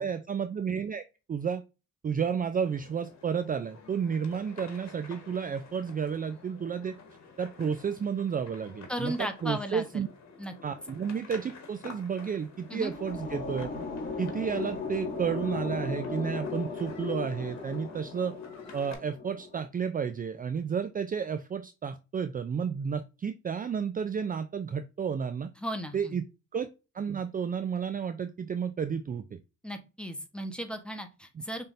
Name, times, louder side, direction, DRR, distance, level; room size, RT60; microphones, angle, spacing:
voice 1, 0.0-1.6 2.0-7.0 7.4-10.1 10.6-13.7 14.2-18.3 18.7-25.5 25.9-26.2 26.5-26.7 26.9-29.4 31.4-31.5, right 7 dB, 30° right, 0.4 m, -32 dB
sound 1, 2.5-19.0, left 5 dB, 60° left, 1.5 m, -50 dB
voice 2, 8.9-10.0 10.4-10.5 12.7-12.9 25.6-26.2 29.6-31.7, equal, 5° left, 1.0 m, -36 dB
sound 2, 12.5-19.7, left 4 dB, 30° left, 2.3 m, -37 dB
5.6 x 3.6 x 2.6 m
cardioid pair, 90°, 30 cm